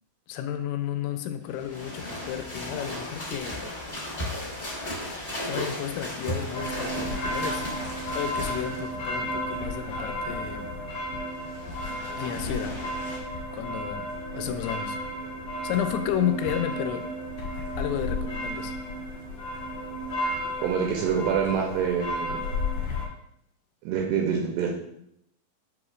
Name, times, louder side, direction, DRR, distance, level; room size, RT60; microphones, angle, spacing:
voice 1, 0.3-3.6 5.4-7.7 8.2-10.7 12.2-12.8 13.5-15.0 15.6-17.1 17.8-18.7, left 10 dB, 85° left, 8 dB, 2.8 m, -32 dB
sound 1, 1.5-9.0 11.2-13.2, left 1 dB, 25° left, 1.5 m, -36 dB
sound 2, 6.5-23.1, left 1 dB, 70° left, 1.7 m, -33 dB
voice 2, 20.6-22.4 23.8-24.7, right 7 dB, 85° right, 1 dB, 2.4 m, -26 dB
7.9 x 4.9 x 2.4 m, 0.75 s
omnidirectional pair, 5.3 m